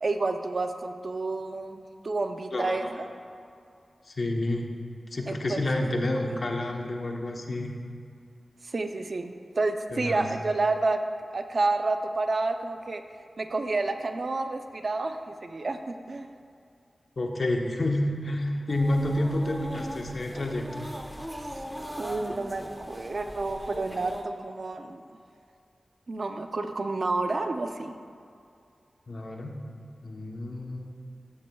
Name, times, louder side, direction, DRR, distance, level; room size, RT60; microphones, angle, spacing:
voice 1, 0.0-3.1 5.3-5.6 6.3-6.4 8.6-11.0 11.3-13.0 13.4-15.8 16.1-16.3 21.4-21.6 22.0-25.0 26.1-28.0, right 3 dB, 55° right, 6 dB, 0.5 m, -30 dB
voice 2, 2.5-2.9 4.0-4.7 5.1-7.7 9.9-10.3 17.2-20.9 29.1-29.6 30.0-30.9, left 1 dB, 55° left, 2 dB, 0.9 m, -29 dB
sound 1, 18.7-24.2, equal, 5° right, 0.9 m, -39 dB
14.0 x 8.6 x 2.3 m, 2.4 s
wide cardioid pair, 75°, 0 cm